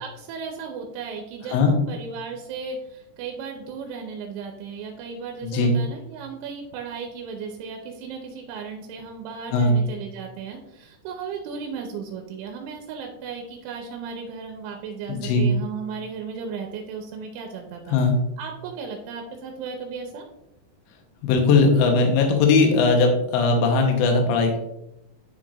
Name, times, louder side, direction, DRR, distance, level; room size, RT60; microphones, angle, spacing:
voice 1, 0.0-18.0 18.4-20.2, right 5 dB, 85° right, 2 dB, 3.1 m, -35 dB
voice 2, 5.4-5.7 9.5-9.7 15.1-15.5 17.9-18.1 21.2-24.6, left 3 dB, 75° left, 2 dB, 3.1 m, -19 dB
10.0 x 4.6 x 2.5 m, 0.86 s
omnidirectional pair, 5.5 m